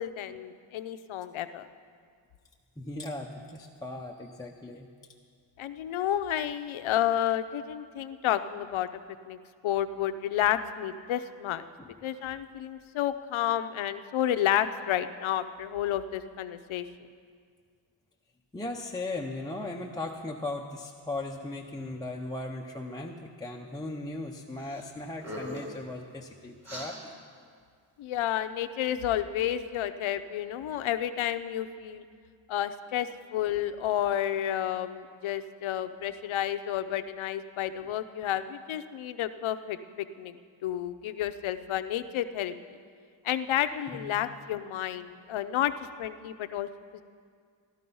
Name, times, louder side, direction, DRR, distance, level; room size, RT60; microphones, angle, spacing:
voice 1, 0.0-1.7 5.6-8.9 9.3-9.4 9.6-11.6 12.0-16.9 28.0-32.0 32.5-40.4 40.6-42.5 43.2-45.7 46.0-47.0, left 11 dB, 85° left, 11 dB, 0.7 m, -31 dB
voice 2, 2.8-4.9 11.8-11.9 18.5-27.5 43.9-44.2, left 2 dB, 10° left, -1 dB, 0.5 m, -38 dB
sound 1, 24.6-24.8 25.1-25.8 26.6-26.9, left 1 dB, 35° right, 3.0 m, -40 dB
14.5 x 12.5 x 5.4 m, 2.1 s
wide cardioid pair, 165°, 47 cm